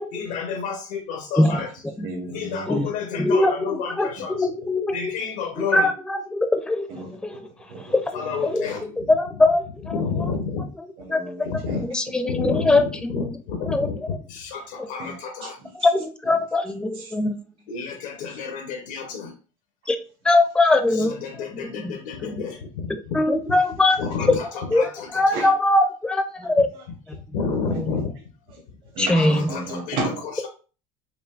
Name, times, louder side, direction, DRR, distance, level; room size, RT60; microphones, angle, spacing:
voice 1, 0.1-1.7 2.3-4.5 4.9-5.9 8.1-9.1 9.9-10.6 11.1-11.2 11.4-11.8 12.3-12.8 13.1-14.0 14.3-15.6 17.7-19.3 20.9-23.2 24.0-25.5 27.1-28.1 29.1-30.0, left 5 dB, 90° left, 3 dB, 0.8 m, -30 dB
voice 2, 1.4-2.1 2.7-2.9 3.2-5.2 5.6-7.4 7.9-8.0 8.4-8.6 9.1-10.0 11.1-11.2 11.8-13.3 13.7-13.9 15.8-17.4 19.9-21.2 21.6-21.9 22.2-22.4 23.1-24.4 24.7-26.7 27.7-27.9 29.0-29.4, left 2 dB, 5° left, 7 dB, 0.4 m, -22 dB
voice 3, 2.0-2.9 4.2-4.3 6.9-8.7 11.0-11.9 12.8-12.9 15.0-15.1 15.4-15.9 16.9-17.1 18.2-18.4 25.3-25.5 26.7-26.8 27.7-27.8 28.9-30.5, right 2 dB, 60° right, -1 dB, 1.2 m, -34 dB
4.9 x 2.7 x 2.4 m, 0.36 s
supercardioid pair, 110°, 18 cm